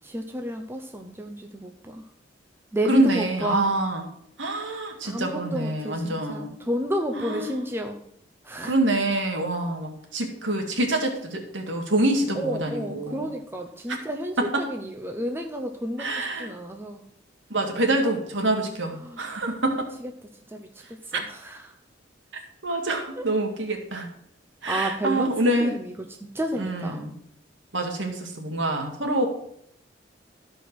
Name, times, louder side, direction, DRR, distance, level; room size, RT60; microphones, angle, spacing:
voice 1, 0.0-2.0 2.7-3.7 5.0-8.0 8.4-8.7 12.4-17.0 17.9-18.1 19.0-19.2 20.5-21.8 23.2-23.3 24.7-25.3 25.6-25.9 26.2-27.1, equal, 10° right, 3 dB, 0.8 m, -31 dB
voice 2, 2.9-4.1 4.4-6.5 7.2-7.7 8.6-13.3 14.4-14.6 16.0-16.5 17.5-19.9 21.1-21.2 22.6-24.1 24.6-25.7 26.6-27.1 27.7-29.3, right 2 dB, 85° right, 3 dB, 2.3 m, -26 dB
13.5 x 5.1 x 6.2 m, 0.73 s
head